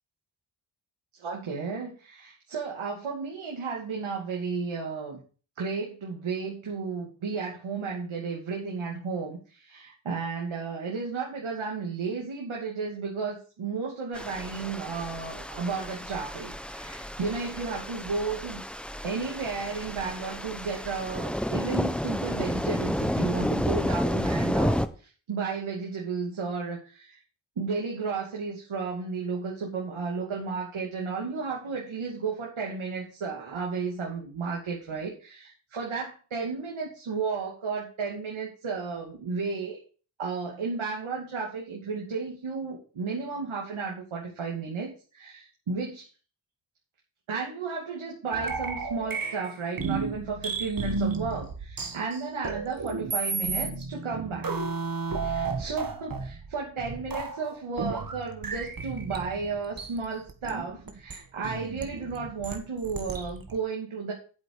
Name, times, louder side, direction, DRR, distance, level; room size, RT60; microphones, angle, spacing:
voice 1, 1.2-5.2 5.6-18.6 19.0-27.2 27.6-39.8 40.2-46.1 47.3-54.5 55.2-64.1, right 4 dB, 85° right, -2 dB, 2.8 m, -33 dB
sound 1, 14.1-24.9, equal, ahead, 1.0 m, -31 dB
sound 2, 48.3-63.6, right 4 dB, 45° right, 1.8 m, -33 dB
9.5 x 8.0 x 5.0 m, 0.37 s
cardioid pair, 60°, 47 cm